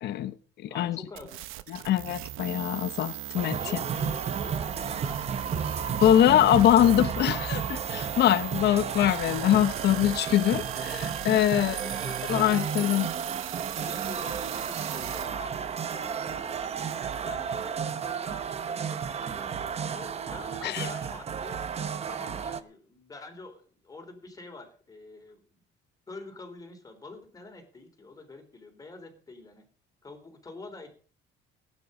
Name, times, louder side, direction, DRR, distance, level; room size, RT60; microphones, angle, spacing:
voice 1, 0.0-1.0 1.7-3.6 6.0-11.7 12.3-13.1 20.6-20.9, left 11 dB, 55° left, 0.9 m, -23 dB
voice 2, 0.7-1.5 3.4-7.4 11.5-12.8 13.7-16.7 17.1-21.7 22.1-25.6 26.1-29.7 30.0-30.9, left 2 dB, 15° left, 3.4 m, -47 dB
sound 1, 1.2-15.3, right 14 dB, 85° right, 1.0 m, -40 dB
sound 2, 3.4-22.6, right 7 dB, 30° right, 0.9 m, -33 dB
17.5 x 9.4 x 5.4 m
cardioid pair, 165°, 21 cm